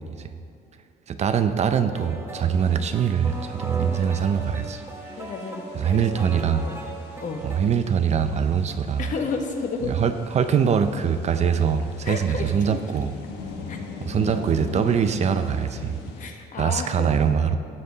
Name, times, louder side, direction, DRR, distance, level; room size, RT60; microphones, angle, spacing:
voice 1, 1.1-4.8 5.2-5.3 5.7-6.7 7.4-9.1 9.9-13.1 14.1-16.0 16.6-17.6, right 7 dB, 40° right, 9 dB, 0.5 m, -23 dB
sound 1, 1.9-7.6, right 2 dB, 15° right, 1.1 m, -37 dB
sound 2, 2.5-16.3, left 4 dB, 80° left, 1.2 m, -41 dB
voice 2, 5.2-5.6 5.9-6.6 7.2-7.4 9.0-9.9 12.0-12.8 13.7-13.8 16.2-17.1, left 4 dB, 50° left, 4 dB, 1.2 m, -31 dB
12.0 x 7.6 x 4.0 m, 2.4 s
cardioid pair, 110°, 17 cm